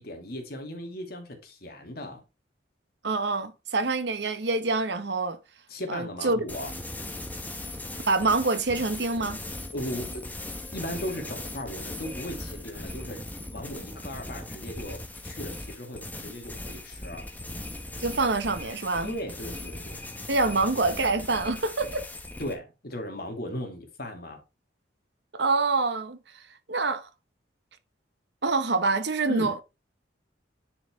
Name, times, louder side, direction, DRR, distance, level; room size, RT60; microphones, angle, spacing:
voice 1, 0.0-2.2 5.7-6.7 9.7-10.3 10.7-13.2 13.5-17.3 19.0-20.0 22.4-24.4 29.3-29.5, left 1 dB, 50° left, 2.3 m, -37 dB
voice 2, 3.0-5.4 5.9-6.4 8.1-9.4 18.0-19.1 20.3-22.0 25.3-26.4 26.7-27.1 28.4-29.6, right 3 dB, 60° right, 0.9 m, -26 dB
sound 1, 6.5-22.6, left 1 dB, 10° left, 1.0 m, -39 dB
9.7 x 4.7 x 3.5 m
head